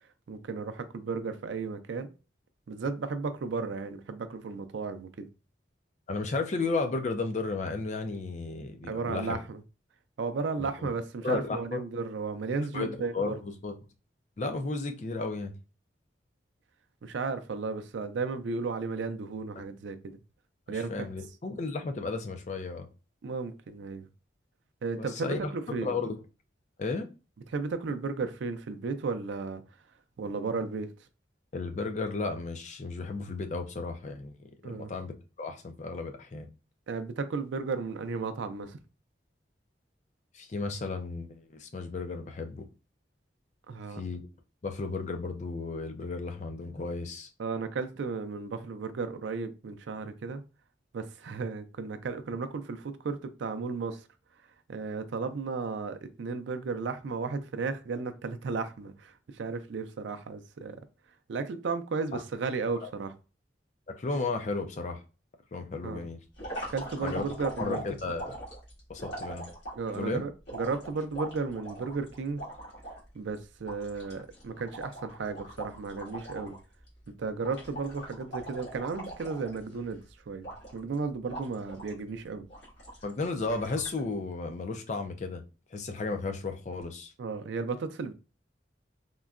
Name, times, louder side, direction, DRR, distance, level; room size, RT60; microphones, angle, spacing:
voice 1, 0.3-2.1 2.7-5.3 8.9-9.6 10.2-13.4 17.0-20.0 20.7-21.1 23.2-24.1 24.8-25.9 27.5-29.6 30.2-30.9 34.6-34.9 36.9-38.8 43.7-44.0 47.4-50.4 50.9-54.0 54.7-60.8 61.3-63.1 65.8-66.1 66.7-67.9 69.8-72.4 73.1-76.6 77.1-80.0 80.3-82.4 87.2-88.1, right 4 dB, 75° right, 0.4 m, -34 dB
voice 2, 6.1-9.4 10.6-10.9 11.2-11.8 12.7-13.4 13.6-13.7 14.4-15.6 19.6-19.7 20.7-22.9 25.0-25.5 25.8-26.1 26.8-27.1 31.5-36.5 40.3-42.7 43.9-44.2 44.6-47.3 62.1-62.2 62.8-62.9 63.9-65.0 65.5-66.2 67.0-68.4 68.9-69.5 69.9-70.2 83.0-85.4 85.7-87.1, left 3 dB, 40° left, 0.4 m, -34 dB
sound 1, 66.4-69.9 70.5-73.0 73.3-73.4 73.7-76.6 76.9-77.1 77.4-79.9 80.4-80.9 81.3-82.0 82.5-83.1 83.5-84.0, right 1 dB, 70° left, 1.7 m, -41 dB
3.7 x 2.1 x 2.3 m
head